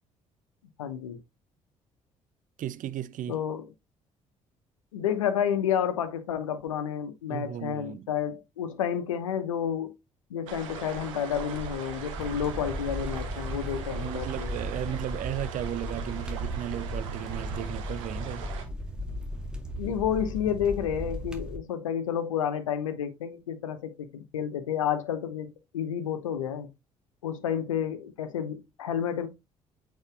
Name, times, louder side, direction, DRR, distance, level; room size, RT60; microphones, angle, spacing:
voice 1, 0.8-1.2 3.3-3.7 4.9-9.9 10.3-14.5 19.8-26.7 27.2-29.3, left 9 dB, 85° left, 0.9 m, -30 dB
voice 2, 2.6-3.4 7.3-8.1 13.9-18.5, right 11 dB, 55° right, 0.6 m, -35 dB
sound 1, 10.5-18.6, right 6 dB, 80° right, 1.4 m, -39 dB
sound 2, 12.2-21.6, equal, 5° right, 2.0 m, -37 dB
8.0 x 4.8 x 3.4 m
hypercardioid pair, 50°, 16 cm